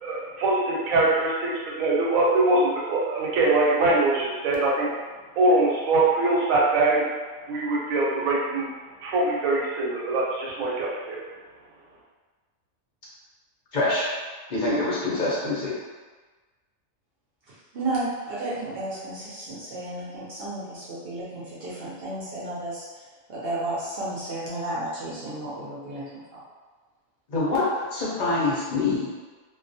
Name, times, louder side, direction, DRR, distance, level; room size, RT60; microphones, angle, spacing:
voice 1, 0.0-4.9 5.4-7.0 7.5-8.7 9.0-11.2, right 2 dB, 85° right, -4 dB, 1.0 m, -23 dB
voice 2, 13.7-14.1 14.5-15.7 27.3-29.2, left 2 dB, 50° left, -8 dB, 0.6 m, -25 dB
voice 3, 17.7-22.8 23.3-26.4, right 2 dB, 60° right, -8 dB, 0.7 m, -32 dB
2.3 x 2.2 x 2.6 m, 1.3 s
omnidirectional pair, 1.4 m